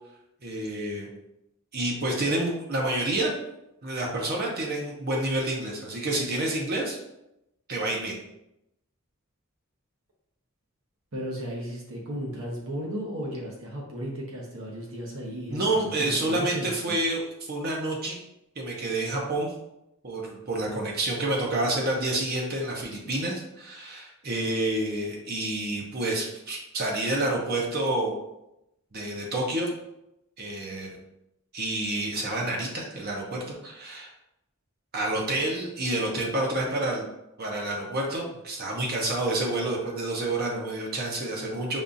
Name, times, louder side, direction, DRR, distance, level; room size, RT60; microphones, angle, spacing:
voice 1, 0.4-1.1 1.7-3.3 3.8-7.0 7.7-8.2 15.5-18.2 18.6-19.5 20.0-28.2 28.9-29.7 30.4-31.0 31.5-34.1 34.9-37.0 37.4-41.8, right 2 dB, 45° right, -1 dB, 0.7 m, -28 dB
voice 2, 11.1-17.0, equal, 70° right, -2 dB, 0.9 m, -35 dB
5.2 x 2.4 x 2.6 m, 0.86 s
head